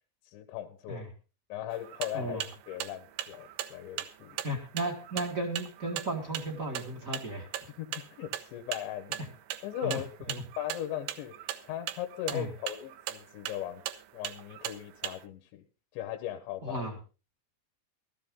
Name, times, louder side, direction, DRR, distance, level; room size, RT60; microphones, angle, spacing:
voice 1, 0.3-1.1 1.5-4.4 7.8-9.2 9.6-11.3 11.7-13.8 14.1-15.6 15.9-16.9, left 11 dB, 90° left, 7 dB, 3.4 m, -38 dB
sound 1, 1.7-15.2, right 12 dB, 80° right, 3.1 m, -39 dB
voice 2, 4.4-7.5 9.8-10.0 12.3-12.5 16.6-16.9, right 1 dB, 65° right, 2 dB, 0.8 m, -34 dB
15.5 x 13.0 x 3.7 m, 0.33 s
omnidirectional pair, 5.0 m